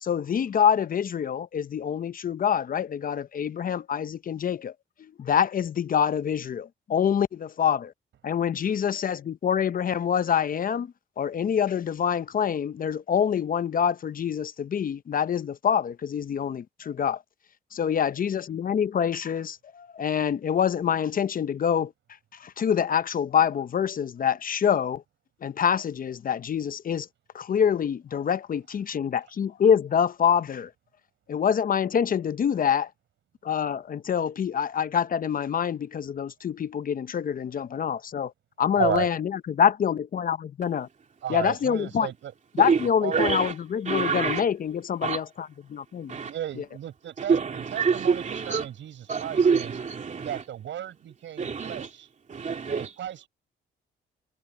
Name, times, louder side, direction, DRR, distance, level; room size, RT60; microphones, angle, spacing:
voice 1, 0.0-4.7 5.0-7.9 8.2-17.2 17.7-21.9 22.4-25.0 25.4-27.1 27.3-30.7 31.3-32.9 33.4-38.3 38.6-40.9 41.3-42.1 42.5-45.5 45.9-46.1 46.6-46.7, left 8 dB, 45° left, 0.7 m, -26 dB
voice 2, 38.7-39.1 41.2-42.3 43.0-43.3 46.3-49.8 50.2-52.1 52.7-53.3, right 10 dB, 70° right, 7.8 m, -34 dB
voice 3, 43.1-43.5 43.9-44.4 45.0-45.2 46.1-46.3 47.2-48.7 49.1-50.4 51.4-51.9 52.3-52.9, right 5 dB, 40° right, 2.8 m, -26 dB
cardioid pair, 90°, 20 cm